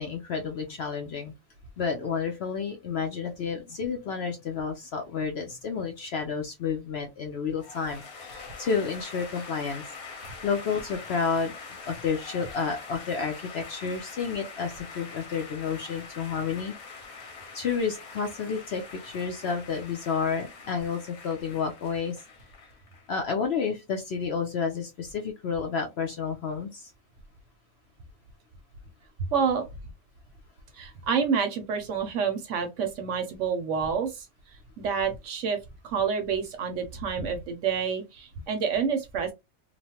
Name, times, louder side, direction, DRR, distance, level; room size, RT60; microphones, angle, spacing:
voice 1, 0.0-1.3 1.8-9.8 10.1-16.7 17.3-22.2 23.1-26.9, left 5 dB, 60° left, 0.7 m, -30 dB
sound 1, 7.6-23.1, left 4 dB, 75° left, 1.3 m, -44 dB
voice 2, 29.3-29.7 30.7-34.3 34.8-35.6 35.8-39.3, right 6 dB, 65° right, 0.9 m, -28 dB
3.0 x 2.1 x 2.8 m
omnidirectional pair, 1.5 m